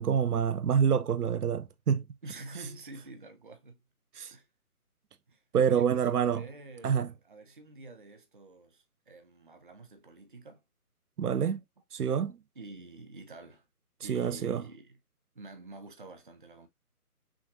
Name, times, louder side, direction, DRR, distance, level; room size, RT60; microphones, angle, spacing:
voice 1, 0.0-2.0 4.2-4.3 5.5-6.4 6.8-7.1 11.2-11.6 11.9-12.4 14.1-14.6, right 7 dB, 80° right, 0.7 m, -27 dB
voice 2, 2.2-3.8 4.3-4.5 5.3-10.6 12.6-13.7 14.0-15.0 15.3-16.7, right 2 dB, 35° right, 0.6 m, -48 dB
5.9 x 2.6 x 2.9 m
hypercardioid pair, 165°, 44 cm